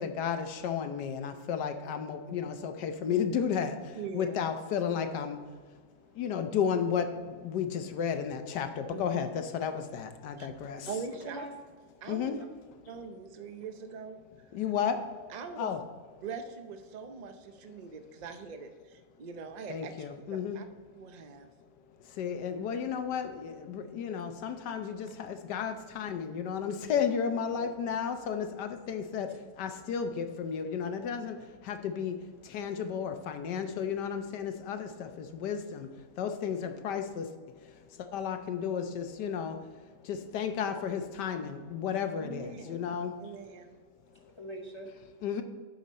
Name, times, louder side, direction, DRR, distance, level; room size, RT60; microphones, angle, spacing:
voice 1, 0.0-5.4 6.1-10.9 12.1-12.4 14.5-15.0 15.6-15.8 19.7-20.6 22.0-37.3 37.6-37.7 38.0-39.6 40.0-43.1 45.2-45.4, left 7 dB, 75° left, 7 dB, 1.4 m, -33 dB
voice 2, 3.9-4.4 8.9-9.2 10.4-10.5 10.9-11.4 12.0-12.3 12.9-14.2 15.3-15.7 16.2-20.7 20.9-21.5 27.5-27.7 42.2-42.9 43.2-43.7, right 5 dB, 60° right, 7 dB, 0.4 m, -42 dB
voice 3, 44.1-45.2, right 1 dB, 30° left, 1 dB, 0.5 m, -46 dB
13.0 x 5.3 x 4.2 m, 1.5 s
omnidirectional pair, 1.8 m